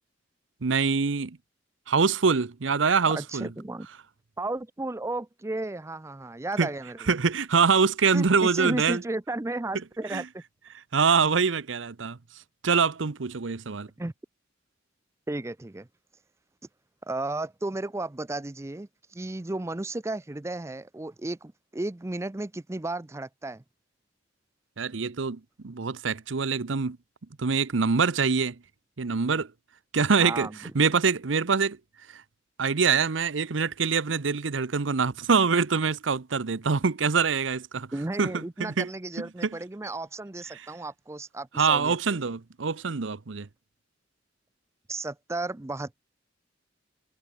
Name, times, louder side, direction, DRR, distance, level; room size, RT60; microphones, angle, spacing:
voice 1, 0.6-1.4 1.9-3.5 6.6-6.7 7.1-9.0 10.1-10.2 10.9-12.2 12.6-13.9 24.8-27.0 27.4-28.6 29.0-29.5 29.9-30.5 30.7-31.8 32.1-32.2 32.6-37.9 38.2-38.9 39.2-39.6 41.5-43.5, right 5 dB, 85° right, 0.8 m, -24 dB
voice 2, 3.1-3.9 4.4-7.1 8.1-10.4 14.0-14.1 15.3-15.9 17.0-23.6 30.2-30.7 37.9-42.3 44.9-46.0, right 2 dB, 15° right, 0.5 m, -34 dB
head